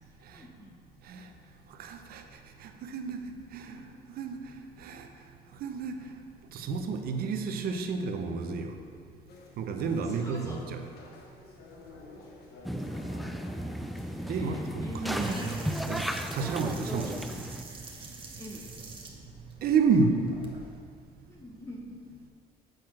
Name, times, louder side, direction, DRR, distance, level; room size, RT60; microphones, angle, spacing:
voice 1, 0.0-0.8 3.6-3.8 9.9-10.6 12.9-13.0 14.0-15.6 16.8-17.0 18.4-18.6 21.3-21.9, left 1 dB, 20° left, -3 dB, 1.0 m, -44 dB
voice 2, 1.8-2.2 2.6-3.8 4.1-4.4 4.8-5.1 5.6-6.0 6.5-8.8 9.6-10.8 14.3-15.4 15.9-17.1 19.6-20.2, right 5 dB, 65° right, 5 dB, 0.8 m, -30 dB
sound 1, 9.3-14.6, left 3 dB, 70° left, 1.1 m, -51 dB
sound 2, 12.6-17.6, equal, ahead, 0.3 m, -35 dB
sound 3, 15.2-20.8, right 4 dB, 30° right, 1.2 m, -44 dB
7.7 x 4.3 x 6.1 m, 2.2 s
cardioid pair, 110°, 17 cm